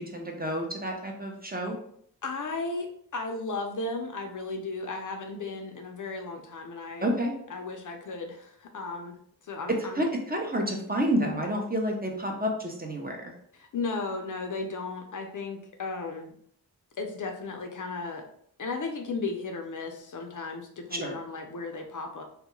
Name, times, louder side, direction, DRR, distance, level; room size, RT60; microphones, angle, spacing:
voice 1, 0.0-1.7 7.0-7.3 10.0-13.3 20.9-21.2, equal, 25° right, 1 dB, 0.6 m, -29 dB
voice 2, 2.2-7.1 7.5-9.2 9.4-10.0 13.5-16.3 17.0-18.2 18.6-22.2, left 3 dB, 50° left, 3 dB, 0.5 m, -35 dB
2.3 x 2.1 x 3.0 m, 0.65 s
cardioid pair, 50°, 40 cm